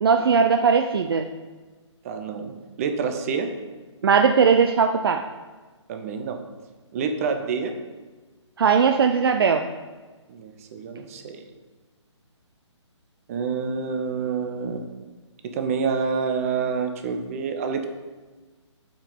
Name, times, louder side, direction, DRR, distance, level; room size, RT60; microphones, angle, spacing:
voice 1, 0.0-1.3 4.0-5.2 8.6-9.7, right 6 dB, 50° right, 6 dB, 0.5 m, -19 dB
voice 2, 2.0-2.5 2.8-3.5 5.9-6.4 6.9-7.7 10.3-11.5 13.3-14.8 15.4-17.9, right 5 dB, 30° right, 6 dB, 0.8 m, -27 dB
7.2 x 5.3 x 5.3 m, 1.3 s
figure-of-eight pair, 150°, 16 cm